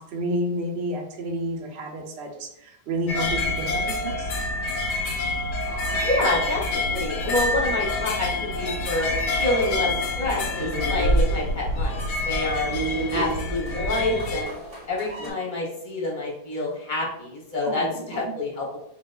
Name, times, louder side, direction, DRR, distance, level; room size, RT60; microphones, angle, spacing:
voice 1, 0.0-4.3 13.1-13.3 17.6-18.2, right 1 dB, 80° right, 1 dB, 0.5 m, -30 dB
sound 1, 3.1-14.4, left 2 dB, 85° left, 1.2 m, -27 dB
sound 2, 5.6-15.3, right 1 dB, 45° right, 0.9 m, -35 dB
voice 2, 6.0-9.1 9.4-9.9 10.2-12.7 13.1-14.6 14.9-18.8, left 2 dB, 40° left, -3 dB, 0.7 m, -27 dB
4.6 x 2.2 x 2.2 m, 0.79 s
omnidirectional pair, 1.8 m